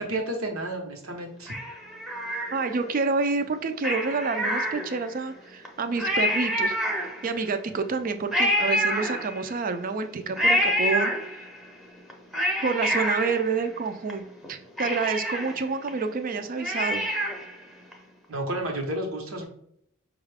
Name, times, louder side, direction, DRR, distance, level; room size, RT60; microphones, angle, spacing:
voice 1, 0.0-1.5 18.3-19.4, right 1 dB, 90° right, 2 dB, 1.0 m, -31 dB
Cat, 1.5-2.9 3.8-5.2 5.6-5.7 6.0-7.5 8.3-9.7 10.4-11.6 12.1-14.1 14.4-14.5 14.8-17.6 17.9-18.0, equal, ahead, 0.6 m, -27 dB
voice 2, 2.5-6.8 7.2-11.5 12.6-14.2 14.5-17.0, right 4 dB, 40° right, 9 dB, 0.4 m, -28 dB
5.4 x 2.4 x 3.4 m, 0.70 s
head